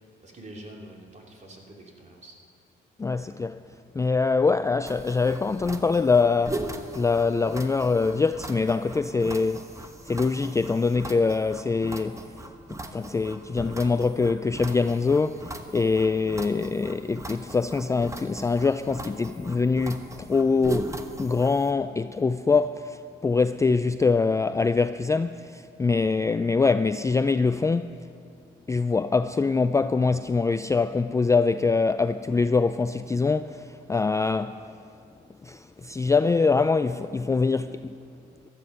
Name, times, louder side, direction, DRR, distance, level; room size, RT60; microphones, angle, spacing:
voice 1, 0.0-2.4, right 1 dB, 35° right, 3.0 m, -46 dB
voice 2, 3.0-3.6 3.9-12.2 12.7-28.0 28.7-34.6 35.4-37.9, left 4 dB, 15° left, 0.3 m, -24 dB
sound 1, 4.9-21.7, right 2 dB, 15° right, 1.0 m, -39 dB
15.5 x 13.0 x 5.7 m
cardioid pair, 90°, 20 cm